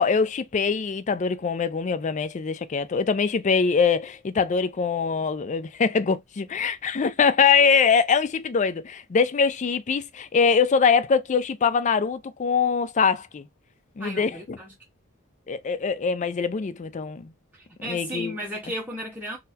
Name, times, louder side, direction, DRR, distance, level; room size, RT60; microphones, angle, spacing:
voice 1, 0.0-13.5 14.0-14.6 15.5-17.3 17.8-18.4, left 5 dB, 35° left, 0.4 m, -23 dB
voice 2, 14.0-14.7 17.5-19.4, equal, 10° right, 0.6 m, -34 dB
3.9 x 2.1 x 2.7 m
head